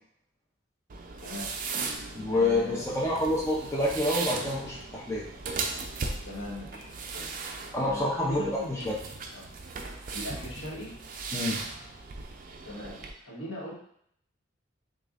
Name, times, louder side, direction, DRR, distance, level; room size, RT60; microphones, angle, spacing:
sound 1, 0.9-13.1, right 4 dB, 40° right, 0.4 m, -38 dB
voice 1, 1.2-1.5 2.3-3.1 6.2-7.3 7.8-9.0 9.3-9.4 10.1-11.0 12.6-13.7, left 1 dB, 75° left, -4 dB, 1.3 m, -39 dB
voice 2, 2.2-5.2 7.7-8.9 11.3-11.6, left 1 dB, 15° left, -5 dB, 0.6 m, -28 dB
6.6 x 2.4 x 2.5 m, 0.67 s
head